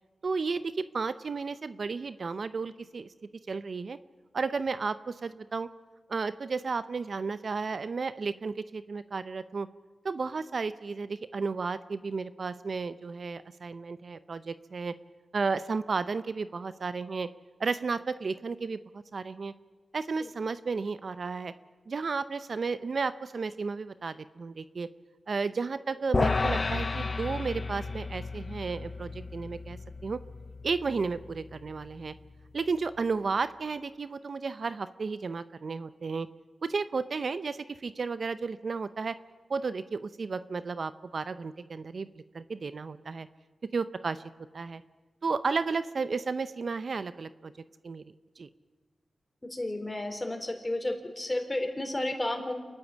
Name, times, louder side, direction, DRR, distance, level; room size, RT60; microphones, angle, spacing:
voice 1, 0.2-3.1 3.5-4.0 4.3-5.7 6.1-9.7 10.0-14.9 15.3-17.3 17.6-19.5 19.9-21.5 21.9-24.9 25.3-29.8 30.0-30.2 30.6-32.1 32.5-36.3 36.6-39.2 39.5-42.1 42.3-43.3 43.7-44.2 44.5-44.8 45.2-47.5 47.8-48.0 48.4-48.5, right 4 dB, 65° right, 14 dB, 0.7 m, -33 dB
sound 1, 26.1-32.5, left 3 dB, 45° left, 0.5 m, -33 dB
voice 2, 49.4-52.5, left 1 dB, 20° left, 4 dB, 3.9 m, -32 dB
28.0 x 11.5 x 8.4 m, 1.4 s
cardioid pair, 50°, 0 cm